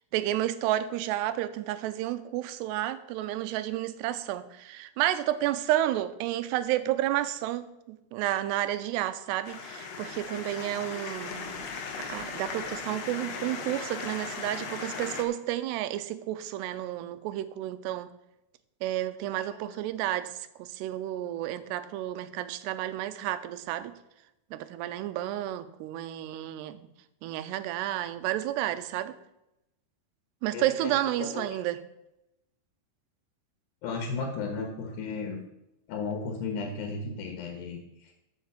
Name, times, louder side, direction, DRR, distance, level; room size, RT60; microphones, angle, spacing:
voice 1, 0.1-11.6 12.0-18.1 18.8-23.9 24.5-26.9 27.2-29.2 30.4-31.8, right 13 dB, 85° right, 12 dB, 2.8 m, -31 dB
sound 1, 9.4-15.2, left 5 dB, 60° left, 1.8 m, -38 dB
voice 2, 19.4-19.8 30.5-31.4 33.8-35.4 35.9-38.1, left 4 dB, 80° left, 4 dB, 3.5 m, -35 dB
13.5 x 6.4 x 5.9 m, 0.87 s
omnidirectional pair, 4.8 m